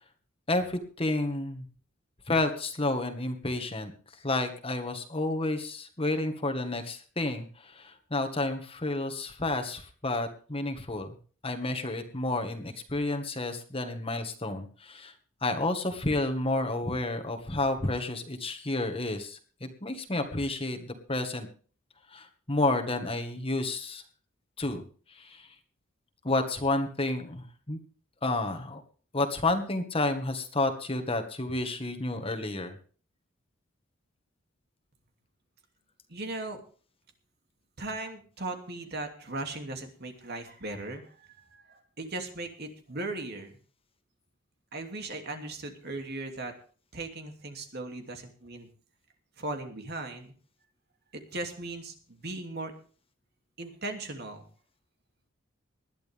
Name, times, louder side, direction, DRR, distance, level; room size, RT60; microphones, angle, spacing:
voice 1, 0.5-1.6 2.3-3.9 4.2-11.2 11.4-15.1 15.4-21.5 22.1-24.0 24.6-24.8 25.1-25.5 26.2-27.8 28.2-28.8 29.1-32.8, left 2 dB, 30° left, 6 dB, 1.8 m, -30 dB
voice 2, 36.1-36.6 37.8-43.6 44.7-46.5 46.9-48.7 49.4-50.3 51.1-52.7 53.6-54.4, right 2 dB, 50° right, 5 dB, 2.8 m, -38 dB
20.0 x 12.0 x 3.6 m, 0.40 s
head